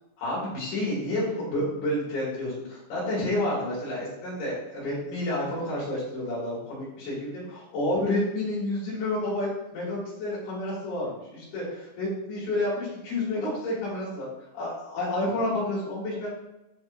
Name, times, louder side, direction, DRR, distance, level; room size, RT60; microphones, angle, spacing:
voice 1, 0.2-14.3 14.5-16.3, left 1 dB, 55° left, -6 dB, 4.3 m, -30 dB
8.7 x 5.8 x 2.7 m, 0.93 s
omnidirectional pair, 5.9 m